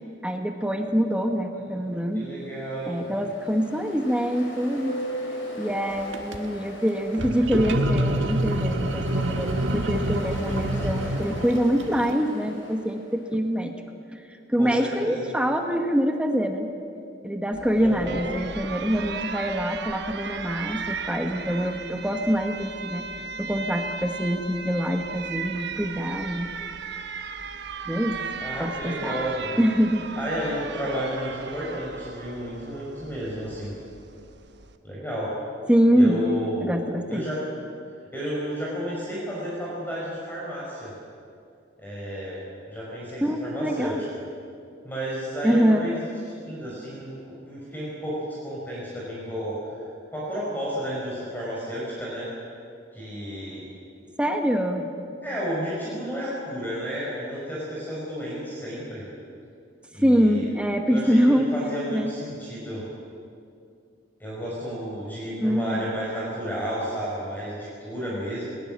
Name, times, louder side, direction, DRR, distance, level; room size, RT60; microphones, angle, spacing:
voice 1, 0.2-2.3 2.9-4.9 5.6-13.7 14.1-16.7 17.2-23.0 23.4-26.5 27.9-28.2 28.6-29.2 29.6-30.1 35.7-36.2 36.6-37.3 43.2-44.0 45.4-45.9 54.2-54.8 60.0-61.5 61.9-62.1 65.4-65.9, equal, 5° right, 4 dB, 1.1 m, -24 dB
voice 2, 2.1-2.9 14.6-15.3 17.8-18.2 28.4-29.6 30.2-33.7 34.8-35.4 35.9-37.4 38.1-40.9 41.8-43.9 44.8-46.1 46.4-49.7 50.1-52.3 52.9-53.6 55.2-59.0 59.9-60.5 60.9-62.8 64.2-68.5, equal, 10° left, -6 dB, 4.9 m, -32 dB
Ocean, 2.2-13.3, equal, 90° left, 5.5 m, -39 dB
sound 1, 6.0-6.4 7.1-12.1, right 1 dB, 80° right, 1.5 m, -27 dB
Alarm, 17.5-34.8, right 5 dB, 65° right, 1.1 m, -36 dB
20.5 x 19.5 x 7.4 m, 2.4 s
head